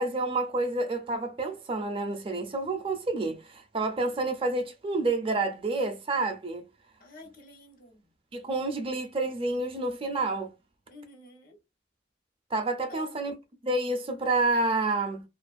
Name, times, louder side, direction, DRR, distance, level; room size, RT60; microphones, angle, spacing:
voice 1, 0.0-6.6 8.3-10.5 12.5-13.4 13.6-15.2, right 2 dB, 30° right, 0.5 m, -29 dB
voice 2, 7.0-8.0 10.9-11.6 12.9-13.2, left 2 dB, 55° left, 0.9 m, -49 dB
2.4 x 2.4 x 2.4 m
head